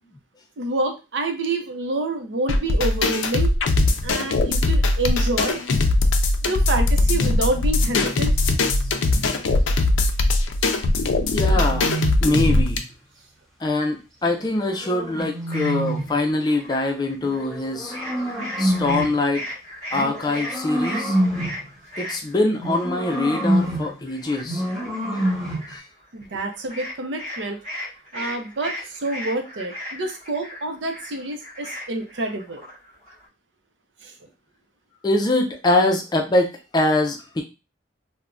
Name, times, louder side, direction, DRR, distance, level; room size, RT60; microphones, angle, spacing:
voice 1, 0.6-3.5 4.0-5.6 6.4-8.3 26.1-27.6 28.1-32.6 34.0-34.1, right 2 dB, 70° right, 4 dB, 0.6 m, -27 dB
sound 1, 2.5-12.8, left 2 dB, 80° left, 0.4 m, -20 dB
sound 2, 7.0-9.4 11.0-12.8 14.2-16.2 17.2-19.2 19.9-21.7 22.6-24.0 24.4-25.7, right 1 dB, ahead, 0.8 m, -28 dB
voice 2, 11.3-11.9 12.2-12.8 13.6-18.0 18.6-19.4 19.9-21.2 22.0-25.2 25.7-25.8 27.7-27.8 28.2-28.4 35.0-37.4, left 2 dB, 20° left, 2 dB, 0.4 m, -23 dB
sound 3, 15.2-17.6 17.9-33.3, left 1 dB, 40° right, 1.5 m, -37 dB
3.3 x 2.1 x 2.5 m, 0.28 s
head